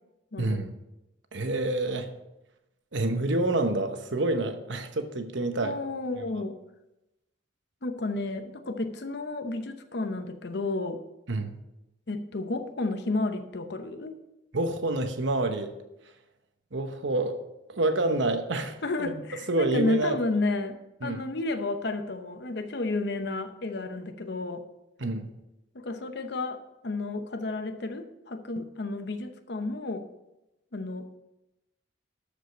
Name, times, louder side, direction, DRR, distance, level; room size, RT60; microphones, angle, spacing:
voice 1, 0.4-0.7 1.3-2.1 2.9-5.8 11.3-11.6 14.5-15.7 16.7-17.4 17.7-19.2 19.5-20.2 21.0-21.2 25.0-25.3, right 2 dB, 65° right, 7 dB, 1.0 m, -28 dB
voice 2, 5.6-6.6 7.8-11.0 12.1-14.2 18.8-24.6 25.7-30.0 30.7-31.2, left 2 dB, 55° left, 8 dB, 0.8 m, -32 dB
13.0 x 5.1 x 5.2 m, 0.95 s
head